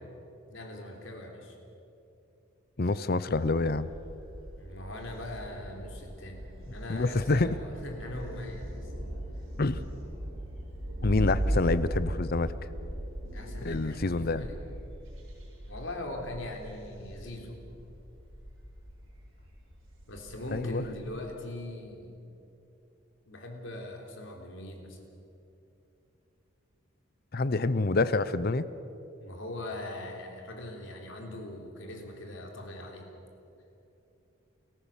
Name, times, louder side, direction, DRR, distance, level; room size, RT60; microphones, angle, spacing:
voice 1, 0.5-1.5 4.6-8.9 11.3-11.5 13.3-14.6 15.7-17.6 20.1-22.2 23.3-25.0 29.2-33.1, left 1 dB, 65° left, 2 dB, 3.6 m, -41 dB
voice 2, 2.8-3.9 6.9-7.6 9.6-9.8 11.0-12.5 13.6-14.5 20.5-20.8 27.3-28.7, left 3 dB, 45° left, 15 dB, 0.6 m, -27 dB
Thunder, 3.3-21.3, equal, 70° right, 5.9 m, -38 dB
29.0 x 14.5 x 7.3 m, 2.9 s
head